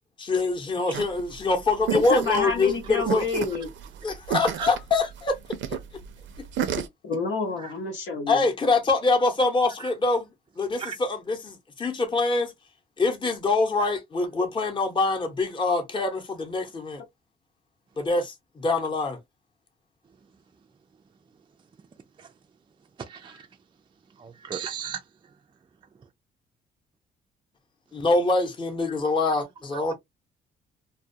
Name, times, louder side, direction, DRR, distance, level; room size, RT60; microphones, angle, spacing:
voice 1, 0.3-3.2 4.0-5.8 6.8-6.9 8.3-10.3 10.6-12.5 13.0-17.0 18.0-19.2 27.9-29.9, left 3 dB, 25° left, 0.8 m, -25 dB
sound 1, 0.9-6.9, right 9 dB, 70° right, 0.5 m, -32 dB
voice 2, 1.9-3.7 7.0-8.4, left 3 dB, 70° left, 0.9 m, -28 dB
voice 3, 23.1-23.5 24.2-25.0, right 7 dB, 25° right, 0.4 m, -35 dB
2.3 x 2.2 x 2.6 m
cardioid pair, 90°, 20 cm